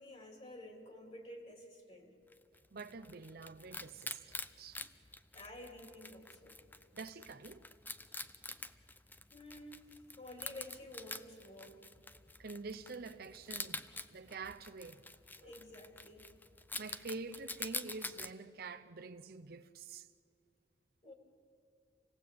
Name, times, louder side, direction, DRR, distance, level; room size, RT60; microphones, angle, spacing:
voice 1, 0.0-2.1 5.3-6.5 9.3-11.9 15.4-16.3 21.0-21.1, left 1 dB, 35° left, 3.3 m, -51 dB
Wild animals, 2.3-18.3, left 3 dB, 10° left, 0.7 m, -47 dB
voice 2, 2.7-4.8 6.9-7.6 12.4-15.0 15.4-15.5 16.8-20.1, right 4 dB, 60° right, 0.7 m, -47 dB
27.5 x 18.0 x 8.5 m
head